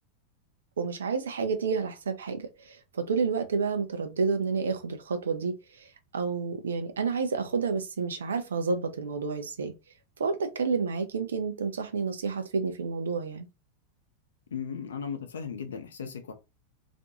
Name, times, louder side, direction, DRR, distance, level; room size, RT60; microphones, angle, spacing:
voice 1, 0.8-5.9 6.1-9.7 10.2-13.5, right 5 dB, 65° right, 0.5 m, -30 dB
voice 2, 14.5-16.3, left 6 dB, 65° left, 0.5 m, -36 dB
2.5 x 2.2 x 2.7 m
figure-of-eight pair, 90°, 0 cm